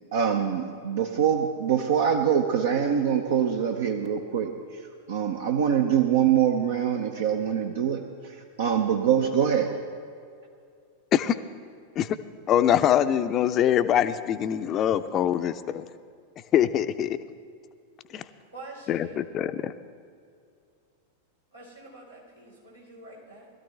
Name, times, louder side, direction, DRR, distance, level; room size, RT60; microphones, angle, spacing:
voice 1, 0.1-4.8 5.1-9.8, right 8 dB, 60° right, 4 dB, 0.7 m, -24 dB
voice 2, 12.5-15.8 16.5-17.2 18.1-18.2 18.9-19.7, left 10 dB, 30° left, 11 dB, 0.5 m, -23 dB
voice 3, 18.5-19.6 21.5-23.5, right 2 dB, 90° right, -6 dB, 4.1 m, -46 dB
20.0 x 13.0 x 3.3 m, 2.3 s
figure-of-eight pair, 90°, 0 cm